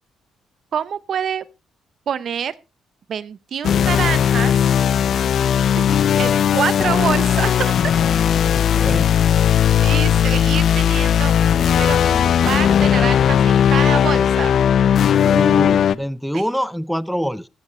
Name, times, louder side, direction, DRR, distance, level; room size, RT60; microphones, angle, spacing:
voice 1, 0.7-1.4 2.1-2.5 3.1-4.6 5.7-5.9 6.2-7.8 9.8-14.5, right 8 dB, 60° right, 0.7 m, -26 dB
sound 1, 3.6-16.0, left 9 dB, 65° left, 0.5 m, -17 dB
voice 2, 8.4-9.1 15.2-17.5, equal, ahead, 0.5 m, -25 dB
15.0 x 10.0 x 3.1 m
cardioid pair, 90°, 0 cm